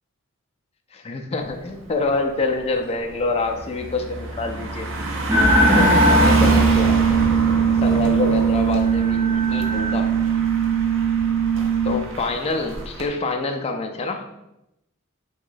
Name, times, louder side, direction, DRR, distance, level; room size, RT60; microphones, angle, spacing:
voice 1, 0.9-4.9 5.7-7.0 7.8-10.1 11.8-14.2, left 3 dB, 30° left, 3 dB, 0.4 m, -26 dB
Car passing by, 1.5-1.7 2.1-13.1, right 1 dB, 65° right, 0.7 m, -26 dB
sound 1, 5.3-11.9, right 4 dB, 10° right, 0.6 m, -19 dB
3.6 x 3.0 x 3.9 m, 0.89 s
head